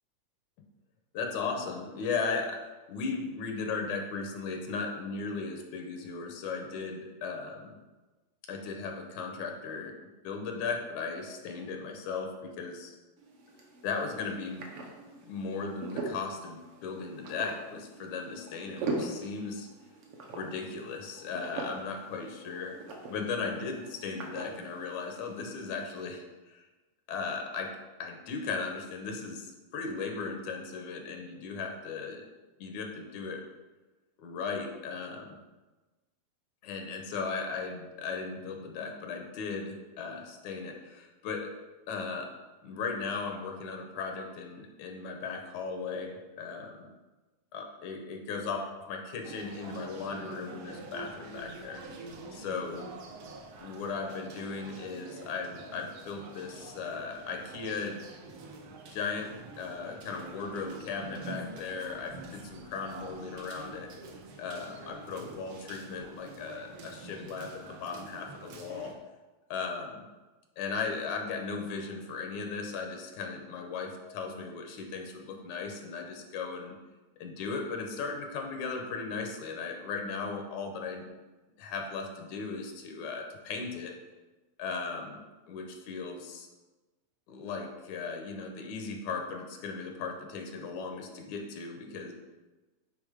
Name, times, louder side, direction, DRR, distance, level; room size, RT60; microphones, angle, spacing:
voice 1, 1.1-7.8 8.5-10.0 10.2-13.0 13.8-14.7 15.2-19.7 20.3-22.8 23.1-26.7 27.1-32.3 32.6-33.4 34.2-35.4 36.6-41.6 41.9-42.3 42.6-46.9 47.5-51.8 52.3-52.9 53.6-58.1 58.9-63.9 64.4-68.9 69.5-70.1 70.6-76.8 77.2-81.1 81.6-84.0 84.6-86.5 87.3-92.1, left 4 dB, 80° left, 3 dB, 2.2 m, -37 dB
sound 1, 13.2-26.1, right 2 dB, 65° right, 1.7 m, -42 dB
sound 2, 49.2-68.9, right 3 dB, 80° right, 1.1 m, -46 dB
8.7 x 3.4 x 4.9 m, 1.2 s
omnidirectional pair, 3.3 m